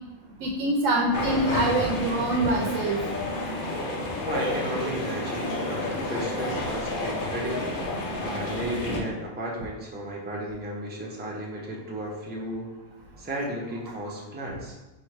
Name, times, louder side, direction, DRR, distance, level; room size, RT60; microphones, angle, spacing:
voice 1, 0.4-3.0, right 2 dB, 80° right, -1 dB, 1.0 m, -25 dB
sound 1, 1.1-9.0, left 2 dB, 50° left, 0.8 m, -30 dB
voice 2, 4.2-7.7 8.2-12.7 13.2-14.8, right 1 dB, 10° right, -3 dB, 0.5 m, -34 dB
4.8 x 2.5 x 4.3 m, 1.1 s
omnidirectional pair, 1.4 m